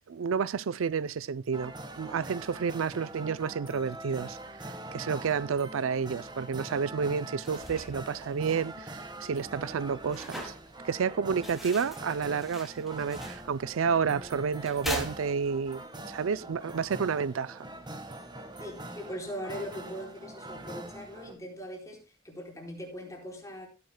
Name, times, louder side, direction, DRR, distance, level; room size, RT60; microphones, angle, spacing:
voice 1, 0.1-4.4 4.7-10.5 10.8-17.6, right 6 dB, 85° right, 0.4 m, -30 dB
sound 1, 1.5-21.3, right 1 dB, 20° right, 1.4 m, -43 dB
sound 2, 7.3-15.8, equal, ahead, 2.6 m, -42 dB
voice 2, 18.6-23.7, equal, 15° left, 4.2 m, -40 dB
16.0 x 10.5 x 2.2 m
head